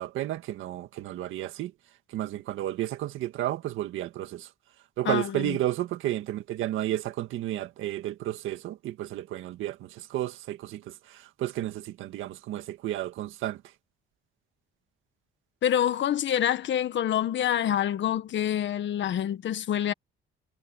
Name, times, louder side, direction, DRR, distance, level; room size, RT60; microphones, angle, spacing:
voice 1, 0.0-1.7 2.1-4.5 5.0-13.6, right 14 dB, 90° right, 1.8 m, -32 dB
voice 2, 5.0-5.6 15.6-19.9, left 10 dB, 70° left, 1.7 m, -26 dB
cardioid pair, 90°, 20 cm